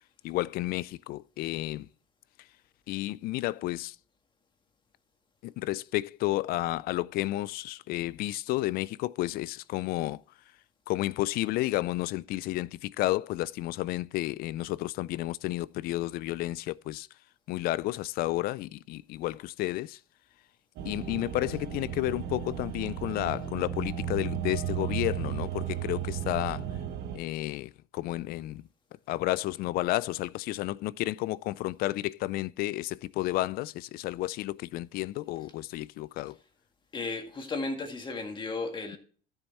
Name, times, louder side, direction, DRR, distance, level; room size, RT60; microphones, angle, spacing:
voice 1, 0.2-1.9 2.9-4.0 5.4-10.2 10.9-17.1 17.5-20.0 20.8-26.6 27.1-28.6 29.1-36.4, left 17 dB, 55° left, 0.4 m, -31 dB
sound 1, 20.8-27.2, right 9 dB, 60° right, 1.4 m, -34 dB
voice 2, 36.9-39.0, left 3 dB, 25° left, 1.9 m, -34 dB
13.0 x 7.2 x 4.2 m
cardioid pair, 135°, 19 cm